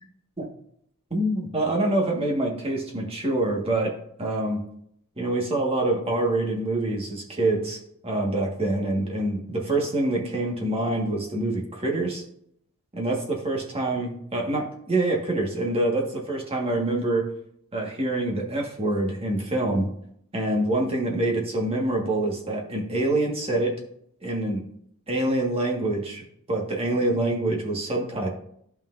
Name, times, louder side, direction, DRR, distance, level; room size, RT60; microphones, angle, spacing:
voice 1, 1.1-4.6 5.2-12.2 12.9-17.3 17.7-19.9 20.3-23.8 24.2-24.6 25.1-28.3, right 2 dB, 30° right, 0 dB, 1.6 m, -26 dB
12.0 x 5.8 x 2.6 m, 0.70 s
head